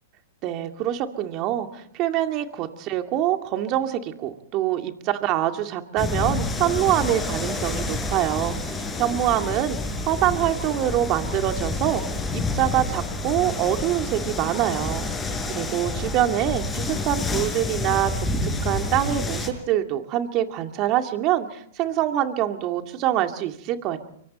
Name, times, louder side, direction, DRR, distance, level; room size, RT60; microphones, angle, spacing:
voice 1, 0.4-9.8 10.0-18.1 18.4-24.0, right 12 dB, 40° right, 6 dB, 2.3 m, -25 dB
sound 1, 6.0-19.5, left 3 dB, 15° left, 6.6 m, -29 dB
25.0 x 24.0 x 4.3 m, 0.68 s
hypercardioid pair, 120°, 0 cm